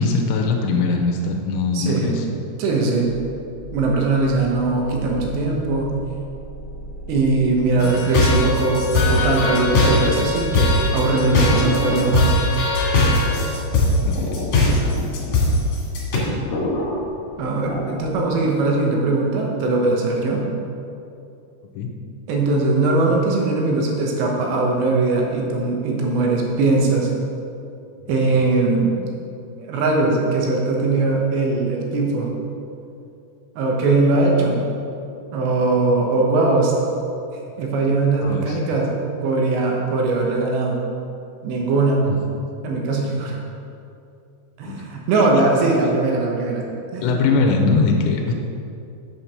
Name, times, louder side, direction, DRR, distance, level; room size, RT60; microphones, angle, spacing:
voice 1, 0.0-2.3 7.8-8.0 10.2-10.3 13.7-14.3 15.2-15.4 21.8-21.9 38.2-38.6 42.0-42.2 44.6-44.9 45.1-45.4 47.0-48.3, left 4 dB, 90° left, 2 dB, 3.0 m, -22 dB
voice 2, 1.7-2.2 2.6-3.1 3.7-5.9 7.1-12.4 17.4-20.5 22.3-27.1 28.1-29.0 29.6-32.3 33.6-34.6 35.3-36.7 37.6-38.9 39.2-40.8 41.4-42.1 42.6-43.4 44.6-46.6 46.9-47.2, right 3 dB, 80° right, -1 dB, 3.3 m, -20 dB
sound 1, 3.0-11.7, right 1 dB, 35° right, 2.4 m, -36 dB
sound 2, 7.8-16.2, left 2 dB, 55° left, 3.1 m, -19 dB
sound 3, 10.6-18.4, left 2 dB, 75° left, 1.9 m, -32 dB
7.8 x 5.9 x 6.8 m, 2.6 s
omnidirectional pair, 5.1 m